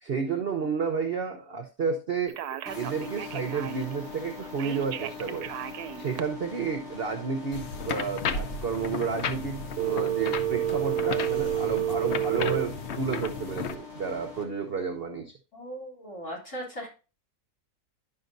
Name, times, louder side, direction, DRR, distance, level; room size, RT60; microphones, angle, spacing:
voice 1, 0.0-5.5 6.0-15.3, right 5 dB, 55° right, 5 dB, 0.7 m, -31 dB
Telephone, 2.3-3.9 4.6-6.2 9.8-12.7, right 14 dB, 70° right, 1.0 m, -30 dB
sound 1, 2.7-14.4, left 4 dB, 40° left, 1.7 m, -43 dB
sound 2, 7.5-13.7, left 5 dB, 85° left, 0.6 m, -34 dB
voice 2, 15.5-16.9, equal, 55° left, -3 dB, 3.7 m, -38 dB
10.5 x 5.8 x 2.6 m, 0.33 s
omnidirectional pair, 1.9 m